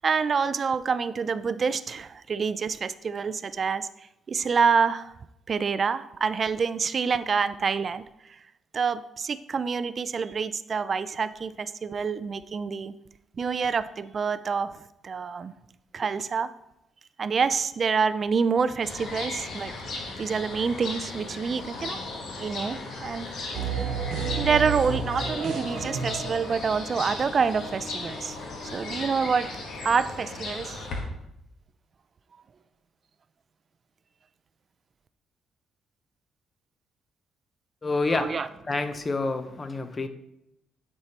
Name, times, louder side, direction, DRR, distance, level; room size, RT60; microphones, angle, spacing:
voice 1, 0.0-3.9 4.3-5.1 5.5-8.0 8.7-12.9 13.4-14.7 15.0-15.5 15.9-16.5 17.2-19.7 20.2-22.0 22.4-23.4 23.7-23.9 24.3-28.4 28.7-29.5 29.8-30.8 38.1-38.5, right 5 dB, 45° right, 14 dB, 0.3 m, -27 dB
sound 1, 18.8-31.0, left 2 dB, 70° left, 1.2 m, -36 dB
sound 2, 23.5-26.8, right 6 dB, 80° right, 1.1 m, -31 dB
voice 2, 37.8-38.3 38.7-40.1, left 3 dB, 30° left, 10 dB, 0.6 m, -28 dB
9.6 x 4.5 x 2.9 m, 0.83 s
cardioid pair, 90°, 0 cm